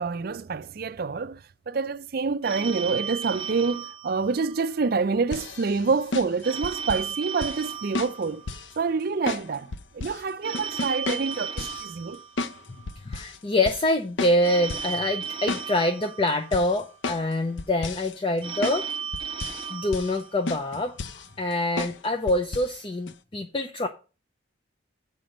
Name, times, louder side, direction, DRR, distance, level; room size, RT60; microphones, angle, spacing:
voice 1, 0.0-8.4 8.8-12.2, right 4 dB, 50° right, 0.4 m, -27 dB
Telephone, 2.4-4.9 6.4-8.9 10.4-12.9 14.4-16.9 18.4-20.9, right 7 dB, 25° right, 1.2 m, -35 dB
sound 1, 5.3-7.1 7.4-7.6 7.9-8.8 9.3-10.2 10.5-11.8 12.4-12.6 12.9-13.4 13.7-13.9 14.2-14.9 15.2-16.0 16.5-17.3 17.6-18.2 18.6-18.8 19.1-19.7 19.9-20.2 20.5-21.3 21.8-22.0 22.3-22.7 23.1-23.2, left 3 dB, 70° left, 0.6 m, -33 dB
voice 2, 13.0-18.8 19.7-21.0 21.4-23.9, left 1 dB, 25° left, 0.6 m, -25 dB
7.6 x 5.1 x 6.5 m
head